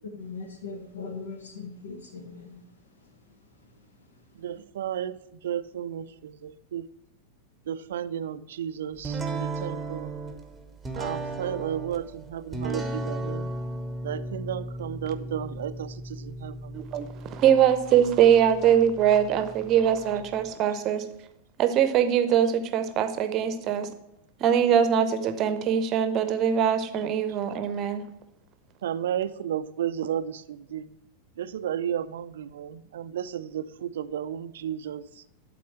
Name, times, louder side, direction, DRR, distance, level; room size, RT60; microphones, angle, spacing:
voice 1, 0.1-2.6 3.0-3.4 3.7-3.8, left 4 dB, 70° left, 1.5 m, -40 dB
voice 2, 4.4-6.9 7.7-10.1 10.9-13.5 14.0-16.8 28.8-30.9 31.4-35.2, right 9 dB, 60° right, 0.4 m, -33 dB
sound 1, 9.0-20.5, right 2 dB, 10° right, 1.0 m, -36 dB
voice 3, 16.7-21.0 21.6-23.9 24.4-28.0, right 9 dB, 35° right, 0.8 m, -22 dB
11.5 x 4.3 x 4.4 m
figure-of-eight pair, 90°, 0 cm